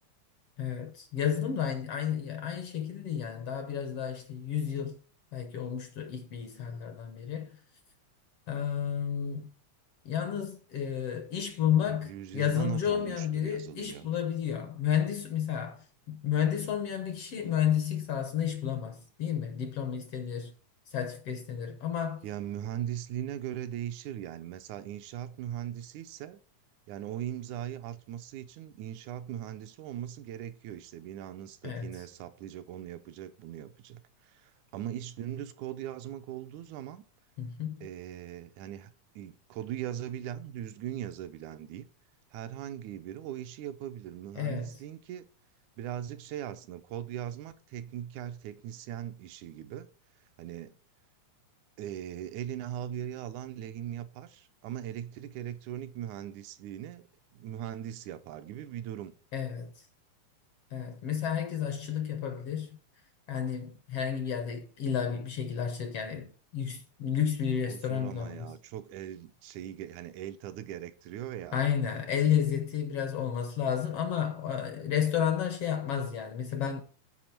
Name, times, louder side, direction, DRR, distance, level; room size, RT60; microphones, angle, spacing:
voice 1, 0.6-5.0 5.3-7.6 8.5-9.5 10.0-20.5 20.9-22.2 31.6-32.0 37.4-37.9 44.4-44.7 59.3-59.7 60.7-62.8 63.3-68.6 71.5-76.8, left 8 dB, 70° left, 1.6 m, -31 dB
voice 2, 11.9-14.1 22.2-26.4 26.9-37.0 37.8-41.8 42.3-45.3 45.8-49.9 50.4-50.8 51.8-57.0 57.3-59.1 67.7-71.6, right 11 dB, 80° right, 2.0 m, -39 dB
13.5 x 5.1 x 4.4 m
omnidirectional pair, 3.5 m